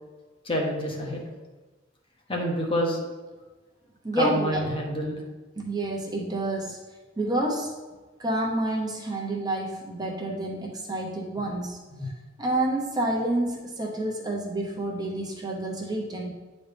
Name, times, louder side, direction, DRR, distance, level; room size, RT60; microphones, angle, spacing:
voice 1, 0.4-1.2 2.3-3.1 4.1-5.2 12.0-12.1, equal, 30° left, 0 dB, 1.1 m, -27 dB
voice 2, 4.0-4.7 5.6-6.8 7.2-7.7 8.2-12.1 12.4-16.3, right 1 dB, 20° right, -2 dB, 0.9 m, -29 dB
9.4 x 4.2 x 3.4 m, 1.2 s
head